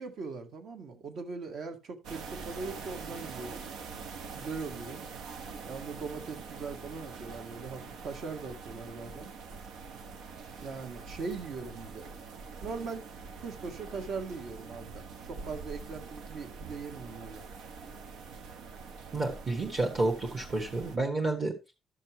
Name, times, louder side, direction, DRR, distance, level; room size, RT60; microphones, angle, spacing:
voice 1, 0.0-3.6 4.3-5.0 5.7-9.3 10.6-12.1 12.6-13.1 13.4-17.4, right 4 dB, 50° right, 1.6 m, -40 dB
sound 1, 2.0-21.0, right 5 dB, 90° right, 1.2 m, -44 dB
voice 2, 19.1-21.5, right 2 dB, 25° right, 1.3 m, -30 dB
12.5 x 6.6 x 2.9 m
cardioid pair, 180°, 0 cm